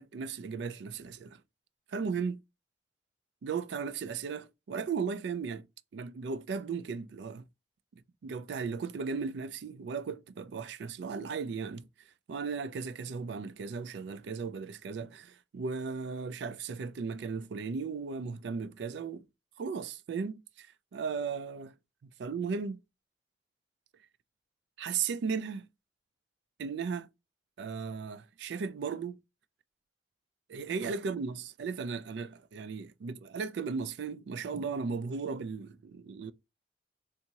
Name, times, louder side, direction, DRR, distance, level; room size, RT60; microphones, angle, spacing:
voice 1, 0.0-1.4 1.9-2.4 3.4-5.6 5.9-7.4 8.2-11.9 12.3-19.2 19.6-20.7 20.9-21.7 22.2-22.8 24.8-25.6 26.6-27.1 27.6-29.2 30.5-36.3, right 5 dB, 70° right, 0.3 m, -36 dB
3.5 x 2.8 x 2.7 m
head